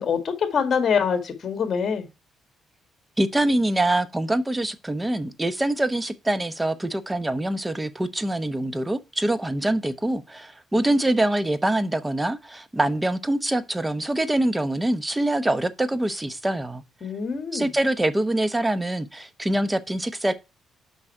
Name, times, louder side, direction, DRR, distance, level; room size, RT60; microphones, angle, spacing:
voice 1, 0.0-2.1 17.0-17.7, left 6 dB, 50° left, 2.0 m, -24 dB
voice 2, 3.2-16.8 17.5-20.3, right 1 dB, 15° right, 0.9 m, -24 dB
6.3 x 5.7 x 4.5 m
cardioid pair, 90°, 0 cm